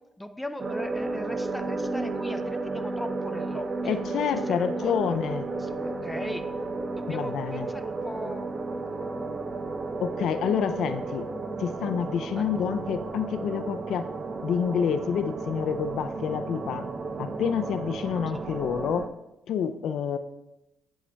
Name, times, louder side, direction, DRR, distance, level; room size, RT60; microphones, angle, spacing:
voice 1, 0.2-4.0 4.5-6.4 6.9-8.5 12.4-12.5 18.3-18.4, left 1 dB, 10° left, 9 dB, 0.5 m, -39 dB
sound 1, 0.6-19.1, right 3 dB, 40° right, 0.6 m, -33 dB
voice 2, 3.8-5.5 7.1-7.7 10.0-11.3 11.6-14.1 14.4-16.9 17.2-19.1 19.5-20.2, left 8 dB, 75° left, 10 dB, 0.4 m, -28 dB
8.4 x 7.2 x 2.3 m, 0.93 s
cardioid pair, 90°, 0 cm